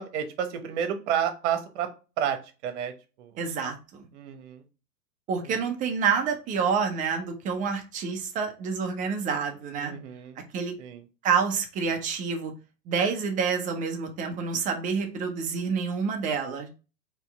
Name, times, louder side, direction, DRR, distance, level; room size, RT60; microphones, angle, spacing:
voice 1, 0.0-1.9 2.2-2.9 3.2-3.3 4.1-4.6 9.8-10.4 10.8-11.0, right 9 dB, 45° right, 7 dB, 1.1 m, -30 dB
voice 2, 3.4-4.0 5.3-9.9 10.5-10.7 11.2-12.5 12.9-16.7, right 6 dB, 15° right, 5 dB, 0.6 m, -28 dB
4.4 x 3.0 x 3.5 m, 0.32 s
figure-of-eight pair, 110°, 49 cm